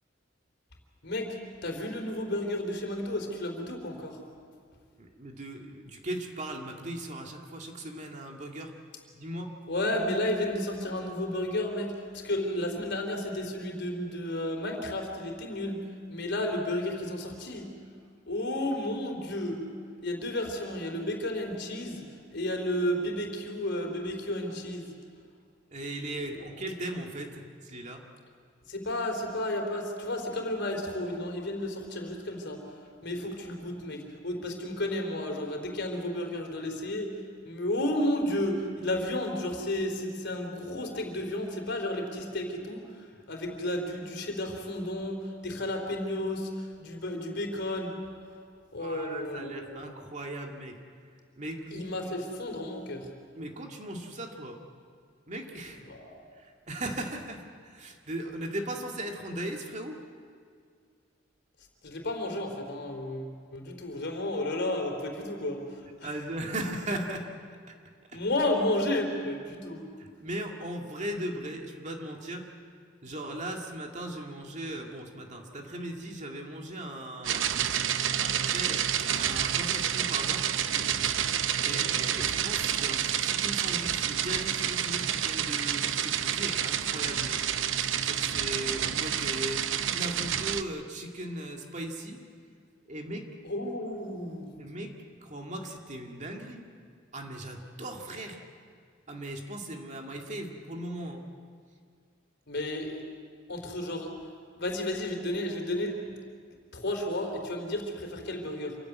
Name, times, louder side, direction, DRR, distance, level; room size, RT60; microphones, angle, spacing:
voice 1, 1.0-1.4 1.6-4.2 9.7-15.8 16.1-17.7 18.3-19.6 20.0-22.0 22.3-24.9 28.7-32.6 33.0-37.1 37.4-42.9 43.3-47.9 48.7-49.8 51.7-53.1 55.9-56.1 61.8-65.6 68.1-69.8 81.7-81.9 93.5-94.5 102.5-103.0 103.5-104.1 104.6-106.0 106.7-108.8, left 1 dB, 60° left, 3 dB, 3.8 m, -32 dB
voice 2, 5.0-8.7 9.1-9.6 25.7-28.0 48.8-51.1 51.4-51.9 53.3-54.6 55.3-55.9 56.3-60.0 66.0-67.3 67.7-67.8 68.1-68.2 70.0-72.5 73.0-77.8 78.2-80.5 80.9-81.2 81.6-92.2 92.9-93.3 94.6-94.9 95.2-96.6 97.1-98.4 99.1-101.2, right 1 dB, 35° right, 2 dB, 2.2 m, -38 dB
sound 1, 77.2-90.6, right 9 dB, 65° right, 0.8 m, -29 dB
27.0 x 15.5 x 9.5 m, 2.1 s
head